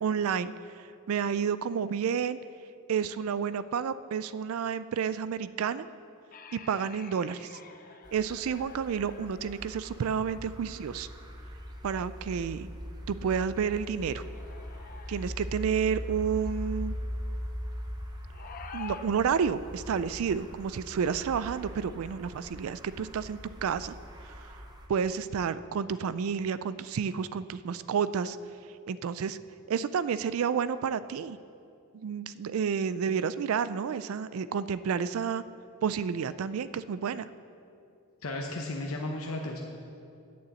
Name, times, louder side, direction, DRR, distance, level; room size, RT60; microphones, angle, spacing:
voice 1, 0.0-2.4 2.9-5.9 6.5-7.6 8.1-11.1 11.8-12.7 13.1-14.2 15.1-16.9 18.7-23.9 24.4-24.5 24.9-28.4 28.9-29.4 29.7-31.4 31.9-35.4 35.8-37.3, right 7 dB, 70° right, 15 dB, 0.3 m, -30 dB
sound 1, 6.3-10.4 13.3-15.9 18.3-19.1, left 6 dB, 40° left, 0.6 m, -49 dB
sound 2, 8.0-24.9, equal, 20° right, 0.9 m, -41 dB
voice 2, 38.2-39.6, left 2 dB, 70° left, 0 dB, 0.8 m, -34 dB
8.6 x 6.8 x 7.9 m, 2.5 s
head